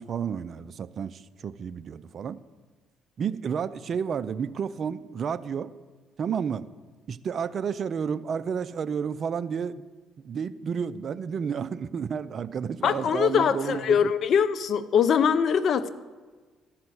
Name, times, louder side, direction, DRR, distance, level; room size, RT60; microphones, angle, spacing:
voice 1, 0.0-2.4 3.2-5.7 6.2-6.7 7.1-9.9 10.2-14.1, right 7 dB, 50° right, 16 dB, 0.4 m, -31 dB
voice 2, 12.8-15.9, left 7 dB, 55° left, 14 dB, 0.6 m, -22 dB
14.0 x 5.8 x 7.8 m, 1.4 s
cardioid pair, 90°, 0 cm